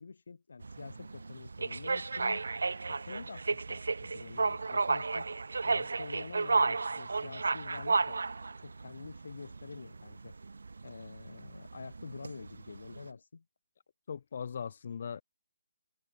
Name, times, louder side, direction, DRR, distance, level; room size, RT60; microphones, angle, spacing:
voice 1, 0.0-2.5 2.9-8.2 8.6-10.4 10.8-13.4, left 4 dB, 60° left, 1.8 m, -47 dB
sound 1, 0.6-13.1, right 4 dB, 90° right, 1.0 m, -33 dB
voice 2, 14.1-15.2, left 7 dB, 35° left, 0.6 m, -39 dB
hypercardioid pair, 180°, 0 cm